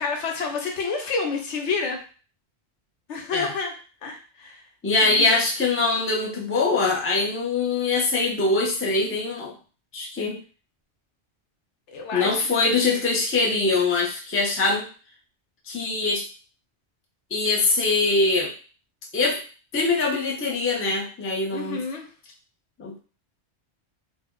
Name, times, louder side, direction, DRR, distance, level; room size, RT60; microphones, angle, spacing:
voice 1, 0.0-2.0 3.1-3.8 4.0-4.6 5.0-5.4 11.9-13.0 21.5-22.1, left 4 dB, 85° left, 3 dB, 1.0 m, -29 dB
voice 2, 4.8-9.5 9.9-10.4 12.1-14.9 15.7-16.3 17.3-18.5 19.1-19.4 19.7-21.8 22.8-23.0, left 3 dB, 20° left, -2 dB, 0.4 m, -23 dB
3.0 x 2.0 x 3.6 m, 0.37 s
omnidirectional pair, 1.2 m